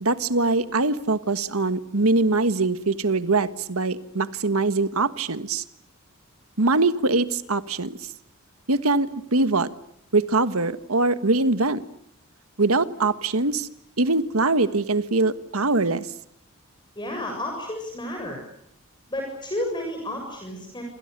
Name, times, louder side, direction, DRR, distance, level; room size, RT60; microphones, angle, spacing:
voice 1, 0.0-5.6 6.6-8.0 8.7-9.7 10.1-11.8 12.6-13.7 14.0-16.1, right 3 dB, 85° right, 12 dB, 1.6 m, -22 dB
voice 2, 17.0-18.4 19.1-20.8, left 1 dB, 20° left, 2 dB, 7.2 m, -31 dB
28.0 x 28.0 x 6.8 m, 0.72 s
head